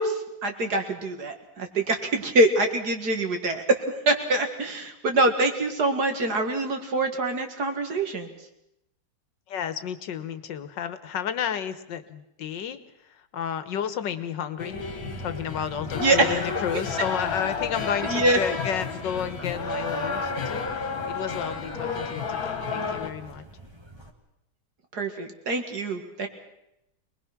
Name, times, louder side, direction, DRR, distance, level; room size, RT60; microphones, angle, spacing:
voice 1, 0.0-8.3 16.0-16.4 18.0-18.4 24.9-26.3, right 2 dB, 60° right, 5 dB, 2.5 m, -25 dB
voice 2, 9.5-14.8 15.2-23.5, left 8 dB, 85° left, 12 dB, 1.8 m, -32 dB
sound 1, 14.6-23.1, left 5 dB, 55° left, 2.0 m, -31 dB
sound 2, 14.7-24.1, right 2 dB, 15° right, 1.8 m, -43 dB
24.0 x 20.0 x 6.0 m, 0.84 s
omnidirectional pair, 1.9 m